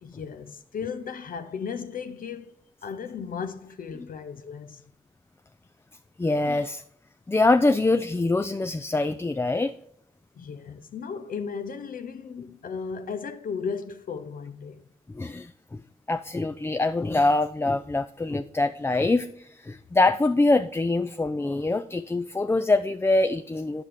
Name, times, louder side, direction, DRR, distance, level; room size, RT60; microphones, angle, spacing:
voice 1, 0.0-2.6 2.8-4.8 10.3-14.9, left 6 dB, 70° left, 0.6 m, -35 dB
voice 2, 6.2-6.8 7.3-9.7 15.1-15.8 16.1-23.8, left 2 dB, 15° left, 0.4 m, -24 dB
8.8 x 5.9 x 3.4 m
cardioid pair, 80°, 15 cm